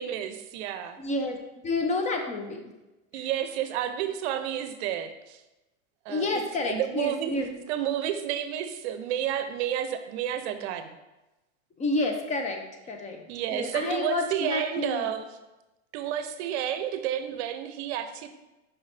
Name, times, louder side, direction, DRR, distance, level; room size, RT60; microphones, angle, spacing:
voice 1, 0.0-1.0 3.1-5.4 6.0-7.4 7.7-11.0 13.3-15.3 15.9-18.3, right 10 dB, 60° right, 10 dB, 0.7 m, -31 dB
voice 2, 1.0-1.4 1.6-2.7 6.1-7.6 11.8-12.6 12.9-15.1, left 2 dB, 20° left, 4 dB, 0.6 m, -29 dB
5.4 x 5.4 x 3.3 m, 1.0 s
supercardioid pair, 140°, 37 cm